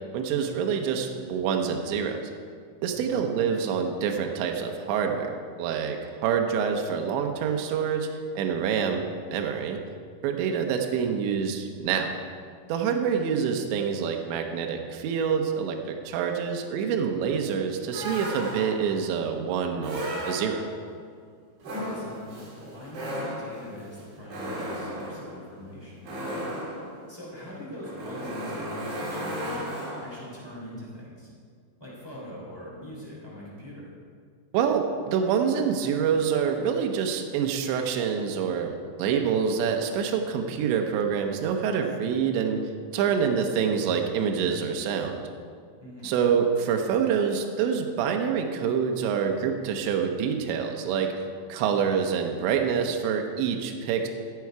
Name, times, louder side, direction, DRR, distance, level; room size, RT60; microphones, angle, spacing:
voice 1, 0.1-2.2 2.8-5.3 5.6-8.1 8.4-9.8 10.2-12.1 12.7-20.6 34.5-42.6 42.9-45.3 46.0-51.1 51.5-54.1, right 7 dB, 75° right, 3 dB, 2.9 m, -26 dB
sound 1, 17.9-19.0 19.8-20.9 21.6-30.3, equal, 50° right, 3.0 m, -35 dB
voice 2, 21.7-26.5 27.1-31.3 31.8-33.9 45.8-46.1, left 1 dB, 5° left, -7 dB, 2.6 m, -42 dB
15.0 x 8.3 x 4.7 m, 2.1 s
omnidirectional pair, 5.7 m